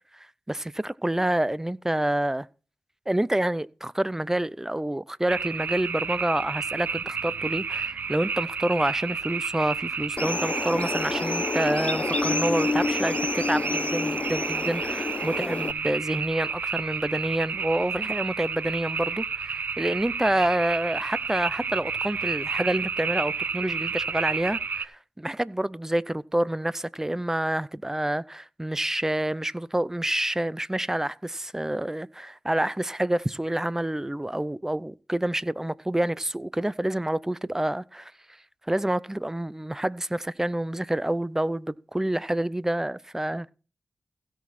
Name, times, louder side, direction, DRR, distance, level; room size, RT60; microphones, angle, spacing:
voice 1, 0.1-2.5 3.1-38.1 38.7-43.5, right 1 dB, 15° right, 0.6 m, -28 dB
sound 1, 5.3-24.8, right 5 dB, 75° right, 0.7 m, -31 dB
sound 2, 10.2-15.7, left 3 dB, 45° left, 0.4 m, -29 dB
16.0 x 6.2 x 4.3 m
cardioid pair, 45°, 3 cm